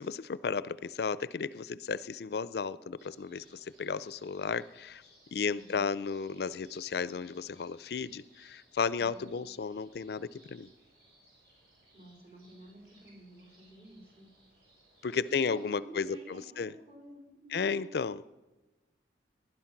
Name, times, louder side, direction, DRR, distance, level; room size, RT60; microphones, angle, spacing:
voice 1, 0.0-5.0 5.3-10.7 15.0-16.7 17.5-18.2, left 5 dB, 65° left, 18 dB, 0.4 m, -34 dB
sound 1, 3.0-15.6, right 1 dB, 60° right, 6.3 m, -64 dB
voice 2, 5.4-5.8 8.9-9.3 11.9-14.3 15.3-17.9, right 1 dB, 35° right, 0 dB, 4.2 m, -51 dB
19.0 x 11.5 x 5.9 m, 1.1 s
head